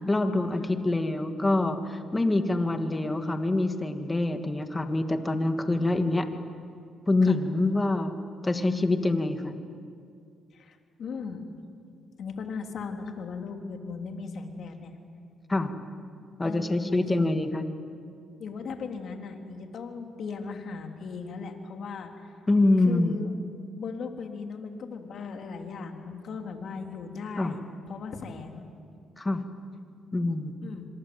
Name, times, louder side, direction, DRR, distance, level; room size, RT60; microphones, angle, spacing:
voice 1, 0.1-6.3 7.1-8.1 8.4-9.6 15.5-15.7 16.4-17.7 22.5-23.2 27.4-27.6 29.2-29.4 30.1-30.5, left 2 dB, 20° left, 6 dB, 2.3 m, -25 dB
voice 2, 10.5-11.5 12.2-15.0 16.4-17.4 18.4-22.3 22.8-23.4 23.8-28.7 30.6-30.9, left 5 dB, 60° left, 3 dB, 3.4 m, -38 dB
28.5 x 26.0 x 7.9 m, 2.4 s
cardioid pair, 90°, 0 cm